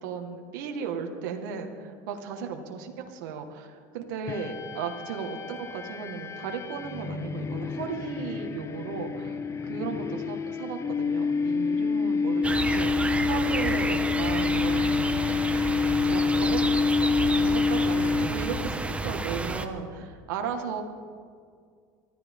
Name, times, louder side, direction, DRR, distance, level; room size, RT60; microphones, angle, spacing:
voice 1, 0.0-15.0 16.0-16.6 17.4-20.8, right 6 dB, 80° right, 3 dB, 1.9 m, -35 dB
sound 1, 4.3-18.8, left 5 dB, 25° left, 1.0 m, -28 dB
sound 2, 12.4-19.7, right 2 dB, 10° right, 1.2 m, -30 dB
24.0 x 15.5 x 3.8 m, 2.1 s
supercardioid pair, 110°, 11 cm